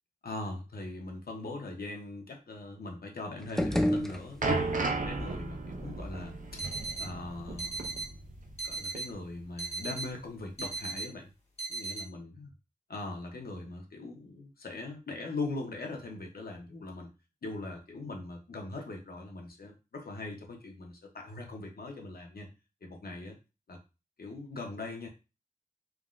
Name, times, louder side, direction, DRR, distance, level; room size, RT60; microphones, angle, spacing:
voice 1, 0.2-6.6 7.0-8.2 8.6-11.3 11.7-12.5 12.9-17.1 17.4-22.5 22.8-23.4 23.7-23.8 24.2-25.1, left 2 dB, 85° left, 2 dB, 0.7 m, -41 dB
sound 1, 3.4-4.8, equal, 5° left, 0.3 m, -30 dB
sound 2, 3.8-8.7 8.9-9.1 9.9-10.0, right 3 dB, 60° right, 0.5 m, -35 dB
sound 3, 6.6-7.1 7.6-8.1 8.6-9.1 9.6-10.1 10.6-11.1 11.6-12.0, right 3 dB, 45° left, 1.0 m, -37 dB
3.4 x 2.0 x 2.4 m, 0.29 s
wide cardioid pair, 75°, 15 cm